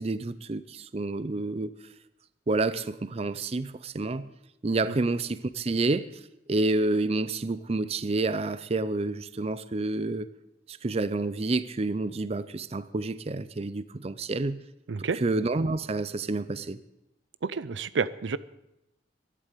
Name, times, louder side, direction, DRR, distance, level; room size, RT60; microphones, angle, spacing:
voice 1, 0.0-1.7 2.5-4.3 4.6-6.1 6.5-10.3 10.7-14.6 15.1-16.8, right 2 dB, 35° right, 15 dB, 0.5 m, -29 dB
voice 2, 14.9-15.2 17.4-18.4, right 5 dB, 80° right, 17 dB, 0.5 m, -29 dB
12.0 x 11.0 x 8.3 m, 0.86 s
head